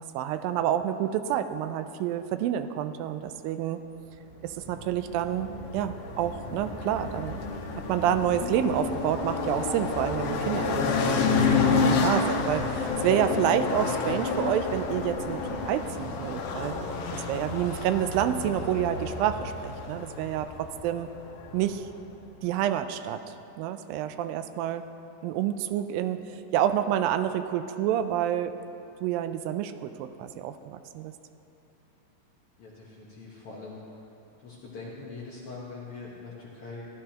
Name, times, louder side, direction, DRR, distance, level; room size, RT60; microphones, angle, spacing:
voice 1, 0.1-3.8 4.4-7.4 7.8-15.4 15.7-16.8 17.1-21.1 21.5-21.9 22.4-23.2 23.6-24.9 25.2-28.6 29.0-31.1, right 10 dB, 85° right, 10 dB, 2.3 m, -28 dB
sound 1, 4.5-21.9, left 4 dB, 85° left, 2.6 m, -29 dB
voice 2, 32.6-33.8 34.4-36.9, left 3 dB, 60° left, -5 dB, 1.5 m, -42 dB
15.0 x 12.0 x 2.9 m, 2.7 s
omnidirectional pair, 4.0 m